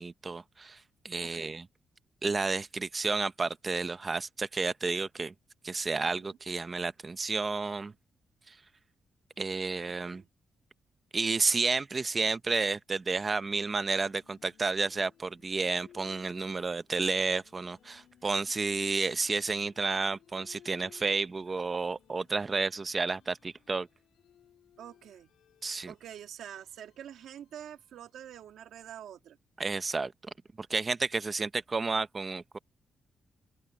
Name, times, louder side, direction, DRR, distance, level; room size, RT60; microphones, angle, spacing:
voice 1, 0.0-1.7 2.2-5.3 5.6-7.9 8.5-8.6 9.4-10.2 11.1-23.9 25.6-25.9 29.6-30.1 30.6-32.6, right 4 dB, 30° right, 0.8 m, -31 dB
voice 2, 1.2-1.5 5.9-6.4 9.9-10.3 24.8-25.3 25.8-29.4, right 10 dB, 85° right, 2.1 m, -47 dB
sound 1, 13.4-28.5, left 10 dB, 90° left, 4.3 m, -62 dB
open air
cardioid pair, 105°, 0 cm